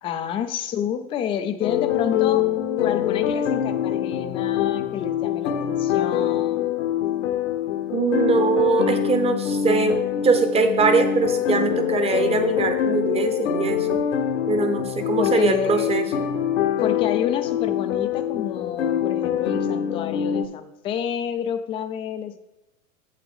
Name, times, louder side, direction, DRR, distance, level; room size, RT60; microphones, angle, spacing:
voice 1, 0.0-2.5 2.8-6.7 15.2-16.0 16.8-22.4, left 8 dB, 15° left, 7 dB, 0.4 m, -29 dB
sound 1, 1.6-20.4, left 10 dB, 60° left, 1.1 m, -24 dB
voice 2, 7.9-14.0 14.4-16.1, right 4 dB, 15° right, 8 dB, 0.9 m, -22 dB
9.0 x 7.5 x 3.5 m, 0.94 s
figure-of-eight pair, 105°, 41 cm